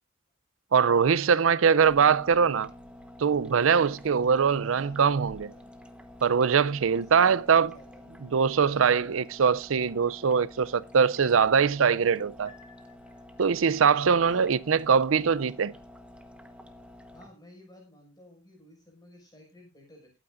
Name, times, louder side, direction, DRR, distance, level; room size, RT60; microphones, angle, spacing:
voice 1, 0.7-2.7 3.2-5.5 6.2-7.7 8.2-12.5 13.4-15.7, right 6 dB, 85° right, 0.5 m, -22 dB
voice 2, 1.2-1.7 3.8-4.2 4.5-5.7 6.8-8.1 14.2-14.6 17.1-20.2, left 1 dB, 20° left, 5.7 m, -53 dB
sound 1, 1.8-17.3, left 1 dB, 5° right, 1.1 m, -49 dB
Piano, 12.5-13.7, left 5 dB, 35° left, 2.0 m, -57 dB
21.0 x 9.0 x 2.6 m
head